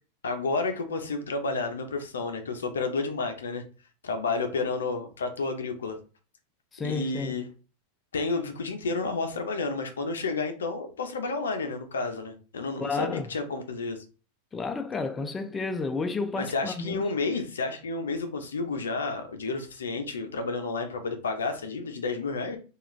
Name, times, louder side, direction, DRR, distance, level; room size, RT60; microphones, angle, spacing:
voice 1, 0.2-3.6 4.0-6.0 6.8-7.5 8.1-14.0 16.4-22.6, left 3 dB, 90° left, 0.6 m, -31 dB
voice 2, 6.7-7.3 12.8-13.3 14.5-17.1, left 4 dB, 20° left, 0.4 m, -31 dB
2.4 x 2.3 x 3.1 m
hypercardioid pair, 110°, 0 cm